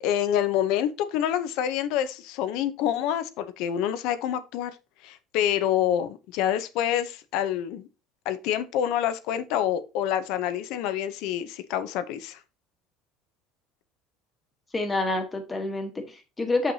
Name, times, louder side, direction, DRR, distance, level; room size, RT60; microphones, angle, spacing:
voice 1, 0.0-4.7 5.0-7.9 8.3-12.4, left 10 dB, 65° left, 0.6 m, -27 dB
voice 2, 14.7-16.7, left 2 dB, 15° left, 1.2 m, -28 dB
6.4 x 5.7 x 2.7 m
cardioid pair, 150°, 0 cm